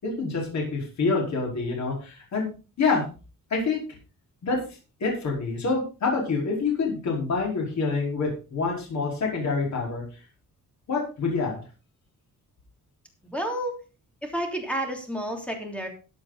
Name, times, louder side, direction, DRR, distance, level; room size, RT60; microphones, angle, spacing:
voice 1, 0.0-2.5 2.8-3.0 3.5-3.8 4.4-4.6 5.0-10.0 10.9-11.6, left 4 dB, 55° left, -1 dB, 4.9 m, -26 dB
voice 2, 13.2-13.7 14.2-15.9, right 1 dB, 5° left, 3 dB, 3.2 m, -30 dB
14.5 x 8.7 x 4.1 m, 0.33 s
wide cardioid pair, 160°, 33 cm